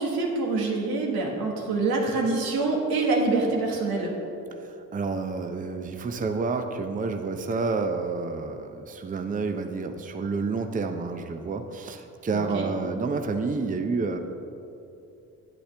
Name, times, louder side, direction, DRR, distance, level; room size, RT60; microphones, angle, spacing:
voice 1, 0.0-4.1 12.3-12.7, right 3 dB, 85° right, 0 dB, 1.4 m, -26 dB
voice 2, 4.9-14.2, right 4 dB, 25° right, 6 dB, 0.6 m, -29 dB
8.4 x 8.4 x 3.4 m, 2.8 s
cardioid pair, 75°, 36 cm